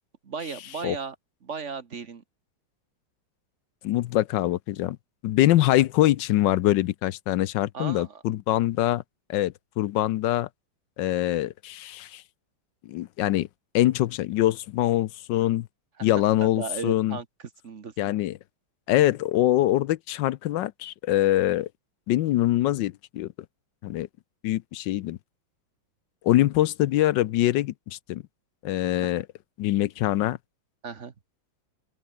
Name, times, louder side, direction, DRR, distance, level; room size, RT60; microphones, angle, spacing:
voice 1, 0.2-1.1 1.4-2.2 7.7-8.2 16.0-16.1 16.4-17.2 17.6-17.9 29.0-29.1 30.8-31.1, right 5 dB, 40° right, 1.4 m, -35 dB
voice 2, 3.8-5.0 5.2-9.0 9.3-10.5 11.0-12.2 12.9-13.5 13.7-15.7 16.0-17.2 18.0-18.4 18.9-21.7 22.1-23.3 23.8-24.1 24.4-25.2 26.2-28.2 28.6-29.2 29.6-30.4, left 14 dB, 75° left, 1.2 m, -24 dB
open air
omnidirectional pair, 2.1 m